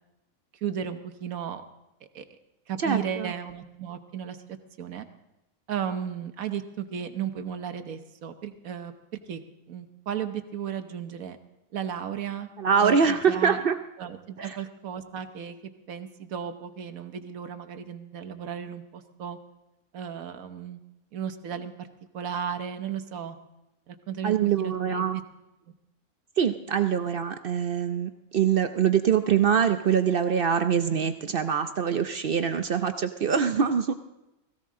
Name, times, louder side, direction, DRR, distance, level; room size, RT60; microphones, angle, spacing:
voice 1, 0.6-1.6 2.1-2.3 2.7-4.4 4.8-5.1 5.7-8.9 9.3-9.4 9.7-11.4 11.7-12.5 12.8-13.6 14.0-15.6 15.9-19.4 19.9-20.8 21.1-21.7 22.1-23.4 23.9-25.1, right 8 dB, 85° right, 8 dB, 1.4 m, -34 dB
voice 2, 2.8-3.3 12.6-13.8 14.4-14.6 24.2-25.2 26.4-33.9, right 7 dB, 55° right, 9 dB, 0.6 m, -24 dB
17.0 x 16.0 x 3.7 m, 0.95 s
omnidirectional pair, 1.4 m